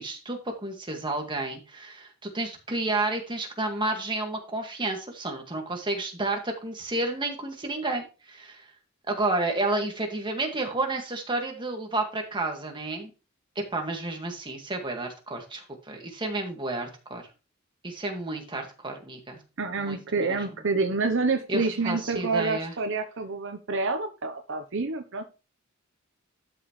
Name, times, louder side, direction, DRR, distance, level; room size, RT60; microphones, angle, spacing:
voice 1, 0.0-8.7 9.1-13.1 13.6-17.2 17.8-19.4 19.8-20.4 21.5-22.7, right 2 dB, 25° right, 2 dB, 2.0 m, -31 dB
voice 2, 19.6-25.2, right 3 dB, 60° right, 6 dB, 0.9 m, -28 dB
12.0 x 6.1 x 3.2 m, 0.32 s
head